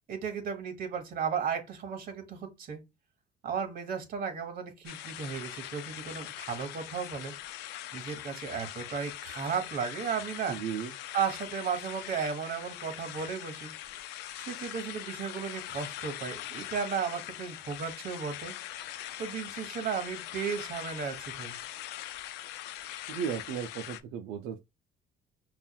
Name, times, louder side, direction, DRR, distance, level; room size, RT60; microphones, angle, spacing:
voice 1, 0.1-2.8 3.4-7.3 7.9-10.6 11.1-13.7 14.4-18.5 19.2-21.5, right 6 dB, 60° right, 1.3 m, -34 dB
sound 1, 4.8-24.0, left 13 dB, 85° left, 0.4 m, -42 dB
voice 2, 10.5-10.9 23.1-24.6, right 8 dB, 85° right, 0.5 m, -35 dB
5.5 x 2.4 x 2.3 m
cardioid pair, 110°, 17 cm